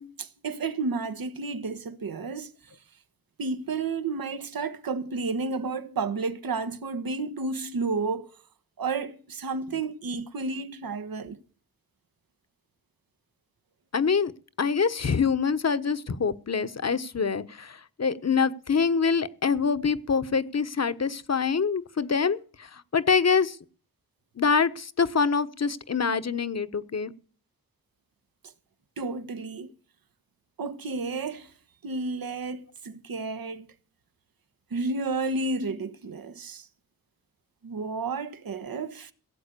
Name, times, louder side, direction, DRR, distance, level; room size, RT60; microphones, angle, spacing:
voice 1, 0.2-2.5 3.4-8.3 8.8-11.4 29.0-29.7 30.6-31.5 31.8-33.7 34.7-36.7 37.6-39.1, right 3 dB, 70° right, 1.3 m, -31 dB
voice 2, 13.9-14.3 14.6-23.6 24.4-27.1, left 5 dB, 45° left, 1.1 m, -25 dB
16.5 x 7.8 x 6.8 m
cardioid pair, 50°, 36 cm